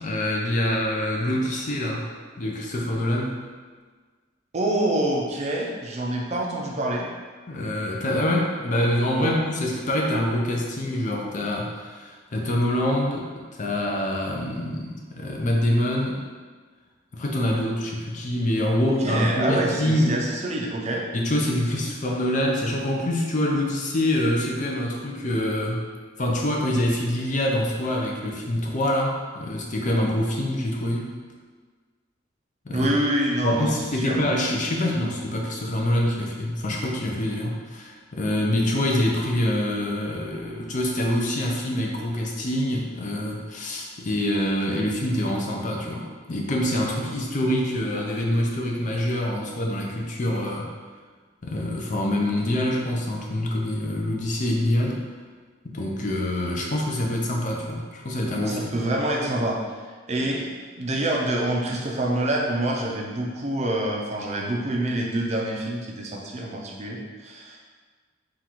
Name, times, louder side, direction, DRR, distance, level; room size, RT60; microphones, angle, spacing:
voice 1, 0.0-2.1 2.4-3.5 7.5-13.3 13.6-16.2 17.1-20.2 21.1-25.8 26.2-31.1 32.7-32.9 33.4-50.7 51.4-55.1 55.6-58.7, left 1 dB, 40° left, -1 dB, 0.5 m, -25 dB
voice 2, 4.5-7.1 9.2-9.4 18.9-21.1 32.7-34.2 58.4-59.6 60.1-60.5 60.8-67.6, right 1 dB, 35° right, -1 dB, 0.5 m, -26 dB
3.8 x 2.4 x 4.4 m, 1.5 s
head